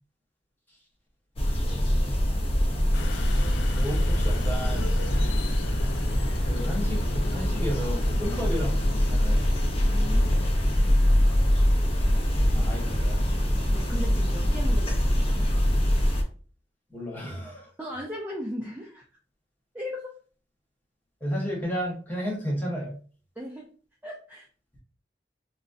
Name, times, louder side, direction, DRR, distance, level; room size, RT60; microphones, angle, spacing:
sound 1, 1.4-16.2, equal, 35° left, 0.6 m, -24 dB
sound 2, 2.9-10.5, left 5 dB, 85° left, 0.4 m, -39 dB
voice 1, 3.7-4.9 6.5-9.4 12.5-13.2 16.9-17.7 21.2-23.0, equal, 10° left, -3 dB, 1.1 m, -33 dB
Motorcycle, 9.0-16.1, equal, 50° left, 1.0 m, -47 dB
voice 2, 9.9-10.4 13.7-15.5 17.8-19.0 19.7-20.1 23.4-23.7 24.0-24.5, equal, 10° right, -3 dB, 0.4 m, -37 dB
3.9 x 2.1 x 2.4 m, 0.40 s
head